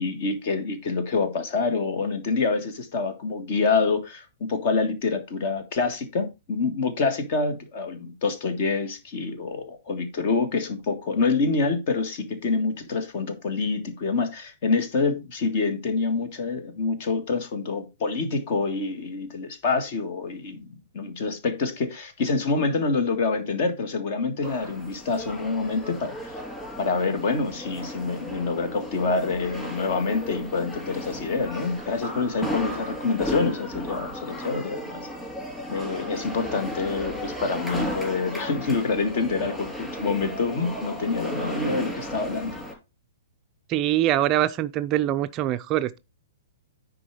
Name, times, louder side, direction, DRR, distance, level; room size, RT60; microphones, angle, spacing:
voice 1, 0.0-26.1 26.8-35.1 35.7-42.6, left 4 dB, 45° left, 1.6 m, -26 dB
sound 1, 24.4-42.7, equal, 5° left, 3.4 m, -35 dB
voice 2, 43.7-46.0, right 13 dB, 30° right, 0.4 m, -23 dB
9.8 x 4.0 x 4.7 m
figure-of-eight pair, 115°, 0 cm